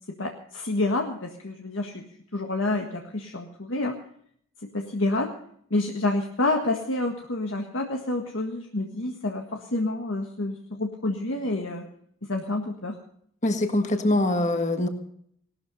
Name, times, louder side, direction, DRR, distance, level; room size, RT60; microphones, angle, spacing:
voice 1, 0.2-2.1 2.3-4.0 4.6-5.3 5.7-11.8 12.3-13.0, left 2 dB, 65° left, 2 dB, 1.6 m, -28 dB
voice 2, 13.4-14.9, left 1 dB, 35° left, 6 dB, 1.7 m, -23 dB
19.0 x 13.0 x 5.4 m, 0.65 s
head